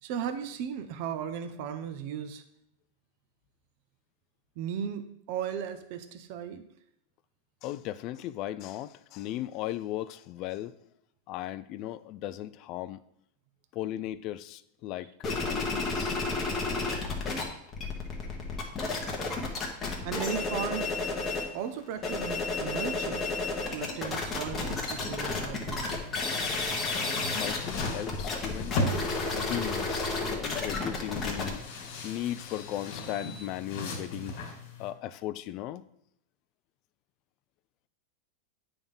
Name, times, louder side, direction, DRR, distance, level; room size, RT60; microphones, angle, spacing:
voice 1, 0.0-2.4 4.6-6.6 20.0-20.9 21.5-23.2 23.7-25.9, right 8 dB, 45° right, 9 dB, 0.6 m, -36 dB
voice 2, 7.6-10.7 11.3-13.0 13.7-15.1 15.4-16.2 27.3-28.8 29.3-34.4 34.8-35.8, left 13 dB, 35° left, 15 dB, 0.3 m, -37 dB
sound 1, 15.2-17.4 17.7-21.5 21.9-33.5, left 3 dB, 15° left, 1.1 m, -32 dB
sound 2, 24.5-34.9, left 2 dB, 55° left, 1.9 m, -38 dB
9.0 x 3.5 x 5.4 m, 0.74 s
supercardioid pair, 165°, 0 cm